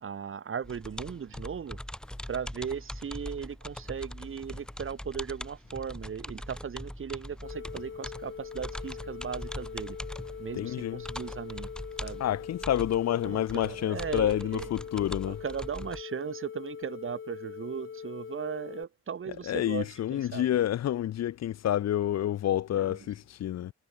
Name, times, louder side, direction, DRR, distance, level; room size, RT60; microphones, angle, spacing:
voice 1, 0.0-1.8 2.3-10.0 10.4-11.7 12.0-12.2 13.2-14.7 15.3-20.6 22.7-23.0, right 7 dB, 45° right, 2.3 m, -37 dB
sound 1, 0.6-16.0, equal, 5° left, 3.0 m, -42 dB
sound 2, 7.4-18.8, left 7 dB, 40° left, 1.7 m, -42 dB
voice 2, 10.5-11.0 12.2-15.4 19.3-23.7, left 12 dB, 60° left, 0.9 m, -29 dB
cardioid pair, 90°, 30 cm